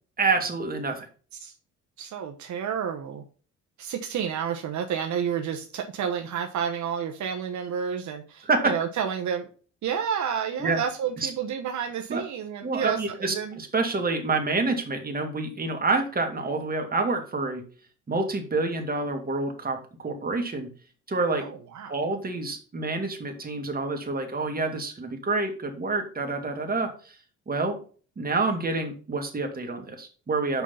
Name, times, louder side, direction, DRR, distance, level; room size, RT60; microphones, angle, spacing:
voice 1, 0.2-1.1 8.5-8.7 10.6-10.8 11.2-11.3 12.1-12.2 12.6-17.6 18.1-20.7 21.1-21.4 21.9-27.2 27.5-27.8 28.2-30.6, right 3 dB, 30° right, 4 dB, 2.3 m, -27 dB
voice 2, 2.0-3.2 3.8-9.5 9.8-13.6 21.3-21.9, right 8 dB, 70° right, 4 dB, 1.1 m, -30 dB
6.1 x 5.7 x 5.7 m, 0.39 s
cardioid pair, 90°, 30 cm